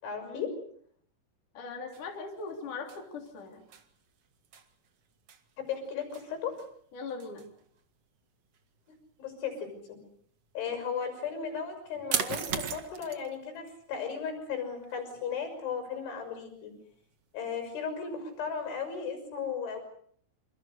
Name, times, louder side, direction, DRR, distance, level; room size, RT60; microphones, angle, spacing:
voice 1, 0.0-0.5 5.6-6.5 9.2-9.7 10.5-16.7 17.3-19.8, left 6 dB, 75° left, 7 dB, 8.5 m, -35 dB
voice 2, 1.5-3.6 6.9-7.5, left 4 dB, 45° left, 2 dB, 4.7 m, -40 dB
sound 1, 1.9-18.9, right 7 dB, 50° right, 1.9 m, -42 dB
28.0 x 27.0 x 6.7 m, 0.63 s
omnidirectional pair, 5.5 m